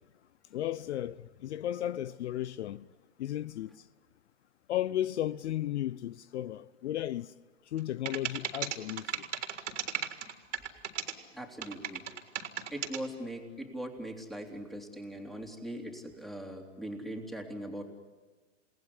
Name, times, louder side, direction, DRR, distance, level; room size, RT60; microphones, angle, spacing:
voice 1, 0.5-2.9 3.2-3.8 4.7-7.3 7.7-9.2, left 12 dB, 60° left, 0.7 m, -34 dB
sound 1, 7.8-7.9 8.1-11.1 11.6-13.0, right 9 dB, 75° right, 3.7 m, -35 dB
voice 2, 11.3-12.1 12.7-17.8, right 1 dB, ahead, 3.5 m, -40 dB
29.0 x 19.0 x 9.9 m
hypercardioid pair, 125°, 37 cm